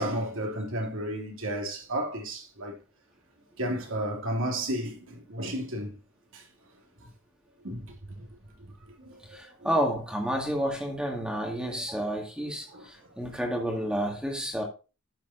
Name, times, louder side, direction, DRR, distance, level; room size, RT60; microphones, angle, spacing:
voice 1, 0.0-2.7 3.6-6.0 6.3-6.4 7.6-8.3 9.0-9.7 12.7-12.9, right 1 dB, 65° right, 2.7 m, -33 dB
voice 2, 9.3-14.6, equal, 5° right, 2.0 m, -30 dB
11.5 x 7.1 x 2.6 m
head